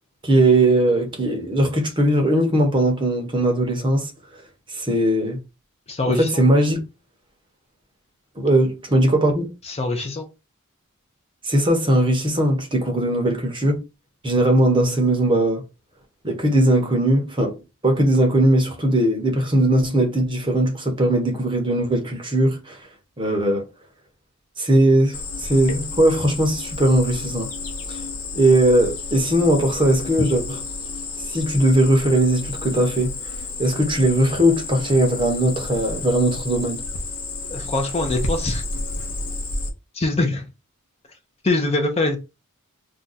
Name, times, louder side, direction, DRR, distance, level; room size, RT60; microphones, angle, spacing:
voice 1, 0.2-4.1 4.7-5.4 6.1-6.8 8.4-9.5 11.4-13.8 14.2-15.6 16.2-17.6 17.8-22.8 23.2-23.6 24.6-27.5 27.9-28.0 28.3-30.6 31.3-33.1 33.6-36.8, right 1 dB, 20° right, 0.7 m, -19 dB
voice 2, 5.9-6.3 9.7-10.3 37.5-38.6 40.0-40.5 41.4-42.2, left 2 dB, 30° left, 0.5 m, -23 dB
Cricket, 25.1-39.7, left 3 dB, 70° left, 0.7 m, -31 dB
2.5 x 2.2 x 3.9 m
head